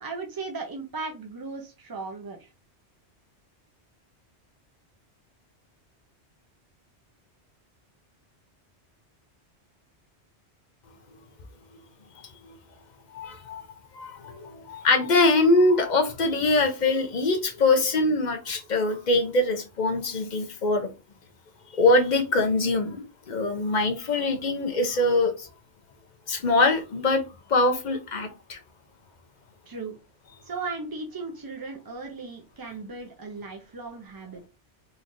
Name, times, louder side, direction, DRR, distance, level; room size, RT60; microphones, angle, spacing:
voice 1, 0.0-2.5 29.7-30.0 30.4-34.5, right 3 dB, 35° right, 0.3 m, -36 dB
voice 2, 13.1-13.7 13.9-20.9 21.7-25.5 26.3-27.2 27.5-28.6, left 2 dB, 45° left, 0.7 m, -23 dB
3.8 x 3.1 x 2.5 m
omnidirectional pair, 1.1 m